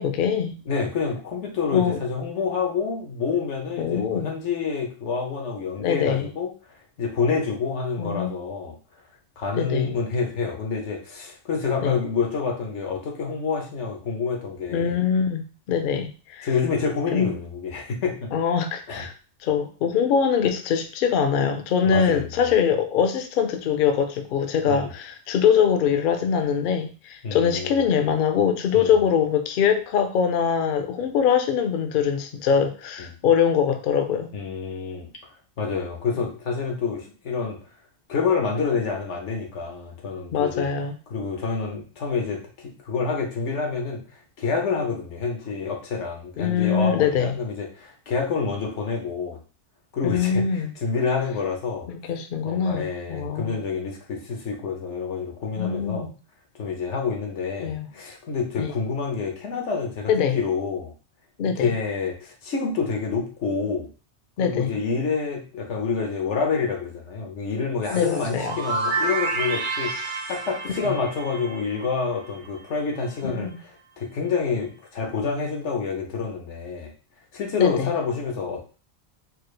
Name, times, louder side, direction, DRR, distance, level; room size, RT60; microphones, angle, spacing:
voice 1, 0.0-0.6 1.7-2.0 3.8-4.3 5.8-6.3 8.0-8.3 9.6-9.9 11.8-12.0 14.7-16.5 17.1-17.3 18.3-19.1 19.4-34.3 40.3-40.9 46.4-47.3 50.0-50.7 51.9-53.6 55.6-56.1 57.6-57.9 58.6-58.7 60.1-60.4 61.4-61.7 64.4-64.8 67.9-68.6 70.8-71.0 73.2-73.6 77.6-77.9, left 7 dB, 60° left, 7 dB, 0.6 m, -23 dB
voice 2, 0.7-6.5 7.0-8.7 9.4-15.0 16.4-18.3 18.9-19.1 21.8-22.5 24.7-24.9 27.2-27.8 28.7-29.0 33.0-33.1 34.3-35.1 35.6-37.6 38.1-40.7 41.1-49.4 49.9-51.9 52.4-56.1 56.5-60.9 61.6-63.9 64.4-73.5 74.0-76.9 77.3-78.6, left 5 dB, 85° left, 2 dB, 1.2 m, -28 dB
sound 1, 67.8-72.6, right 3 dB, 75° right, 1.2 m, -30 dB
4.3 x 2.4 x 3.2 m, 0.36 s
omnidirectional pair, 1.2 m